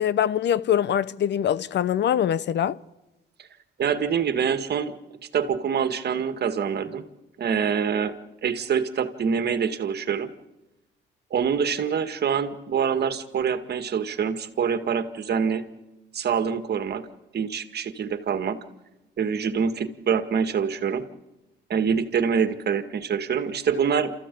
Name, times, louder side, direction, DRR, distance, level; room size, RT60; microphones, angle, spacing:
voice 1, 0.0-2.8, left 9 dB, 60° left, 0.8 m, -23 dB
voice 2, 3.8-4.9 5.3-7.1 7.4-8.1 8.4-10.3 11.3-15.6 16.1-17.1 17.3-18.6 19.2-21.1 21.7-24.1, right 7 dB, 55° right, 1.9 m, -25 dB
29.5 x 14.5 x 8.5 m
cardioid pair, 90°, 20 cm